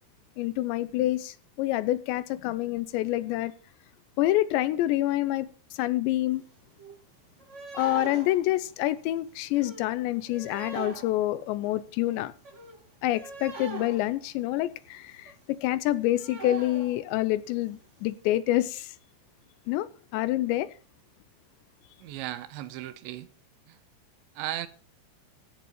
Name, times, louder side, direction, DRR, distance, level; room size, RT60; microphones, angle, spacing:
voice 1, 0.4-3.5 4.2-6.4 7.7-12.3 13.0-18.9 19.7-20.7, left 15 dB, 80° left, 2.9 m, -27 dB
sound 1, 6.4-6.5 6.6-7.0 7.4-14.8 15.1-15.3 15.7-15.8 15.9-17.2 17.6-17.7 18.1-18.2, right 4 dB, 60° right, 0.7 m, -42 dB
voice 2, 22.0-23.3 23.7-23.8 24.4-24.7, right 14 dB, 85° right, 3.1 m, -36 dB
15.5 x 6.8 x 7.3 m
omnidirectional pair, 5.2 m